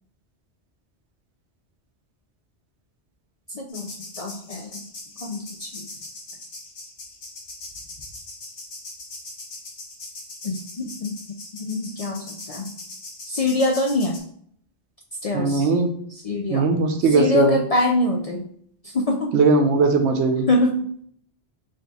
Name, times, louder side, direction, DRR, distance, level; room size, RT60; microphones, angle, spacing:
voice 1, 3.5-4.8 5.2-5.8 10.4-11.2 11.6-12.7 13.3-14.2 15.2-15.7 16.2-16.7 17.1-18.5 18.9-19.3 20.5-20.8, left 2 dB, 55° left, 2 dB, 0.4 m, -24 dB
sound 1, 3.7-14.2, left 2 dB, 70° left, 1.2 m, -40 dB
voice 2, 15.3-15.9 16.5-17.6 19.3-20.5, right 3 dB, 85° right, 6 dB, 1.0 m, -19 dB
5.0 x 3.9 x 2.3 m, 0.64 s
omnidirectional pair, 1.1 m